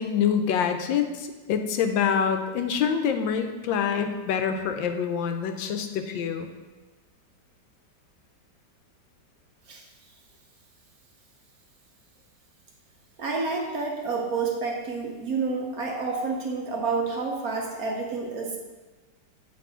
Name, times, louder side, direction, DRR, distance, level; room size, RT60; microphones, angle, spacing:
voice 1, 0.0-6.5, left 7 dB, 80° left, 7 dB, 1.3 m, -26 dB
voice 2, 13.2-18.6, right 4 dB, 60° right, 0 dB, 1.1 m, -29 dB
7.7 x 3.0 x 5.5 m, 1.2 s
omnidirectional pair, 2.0 m